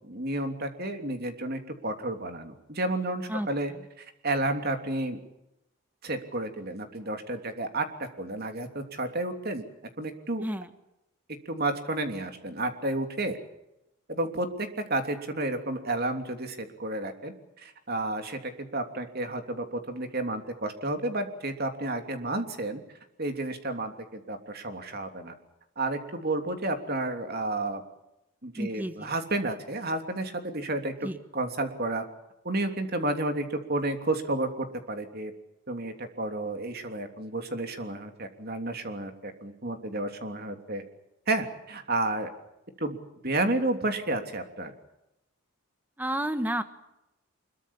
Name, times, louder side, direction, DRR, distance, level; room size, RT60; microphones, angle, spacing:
voice 1, 0.0-3.7 4.0-5.2 6.0-9.6 10.0-10.4 11.4-13.4 14.1-22.8 23.2-25.3 25.8-27.8 28.4-30.9 31.3-32.0 32.4-35.3 35.7-40.8 41.3-42.3 42.8-43.0 43.2-44.7, right 2 dB, 45° right, 6 dB, 3.2 m, -31 dB
voice 2, 28.5-29.1 31.0-31.2 46.0-46.6, right 1 dB, 10° right, 9 dB, 1.4 m, -31 dB
25.0 x 22.5 x 7.4 m, 0.89 s
head